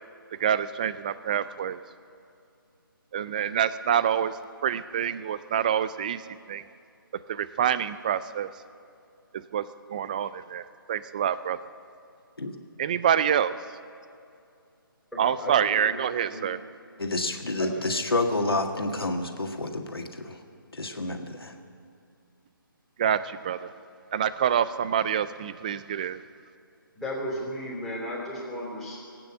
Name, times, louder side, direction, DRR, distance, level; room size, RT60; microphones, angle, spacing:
voice 1, 0.4-1.8 3.1-6.2 6.5-6.6 7.3-8.5 9.5-11.6 12.8-13.6 15.2-16.6 23.0-23.7 24.1-26.2, right 9 dB, 20° right, 15 dB, 0.3 m, -26 dB
voice 2, 15.2-16.0 16.3-16.5 17.6-17.8 23.6-23.7 26.9-29.0, left 1 dB, ahead, -9 dB, 3.4 m, -35 dB
voice 3, 17.0-20.4 20.7-21.5, left 2 dB, 85° left, 4 dB, 1.7 m, -29 dB
19.0 x 9.1 x 8.1 m, 2.5 s
figure-of-eight pair, 150°, 12 cm